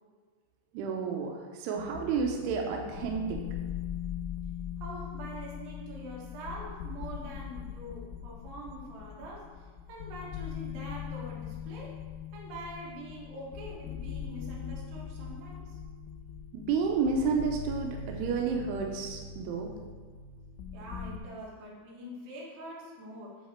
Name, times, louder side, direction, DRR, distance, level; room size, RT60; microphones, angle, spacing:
voice 1, 0.7-3.4 16.5-19.7, right 5 dB, 85° right, 1 dB, 2.4 m, -31 dB
sound 1, 1.8-21.2, left 7 dB, 85° left, 3.0 m, -41 dB
voice 2, 4.8-11.9 12.3-15.8 20.7-23.5, right 1 dB, 65° right, -5 dB, 3.4 m, -44 dB
10.5 x 4.0 x 4.3 m, 1.5 s
omnidirectional pair, 5.7 m